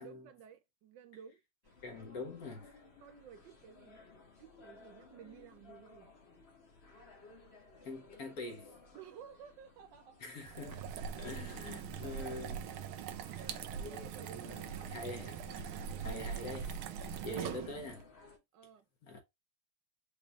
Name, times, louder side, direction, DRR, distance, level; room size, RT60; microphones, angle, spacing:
voice 1, 0.0-1.7 2.2-2.3 3.0-4.1 4.3-6.2 8.9-10.2 11.7-12.2 13.3-14.9 15.7-16.2 17.1-17.4 18.5-18.9, right 8 dB, 75° right, 1.1 m, -55 dB
sound 1, 1.6-18.4, left 4 dB, 35° left, 1.5 m, -58 dB
voice 2, 1.8-2.7 7.8-8.7 10.2-10.8 11.2-12.7 13.3-13.5 14.3-15.7 16.0-18.1 19.0-19.2, left 2 dB, 50° left, 1.4 m, -45 dB
sound 2, 10.4-18.0, right 8 dB, 90° right, 1.5 m, -42 dB
5.3 x 3.1 x 2.4 m
omnidirectional pair, 2.2 m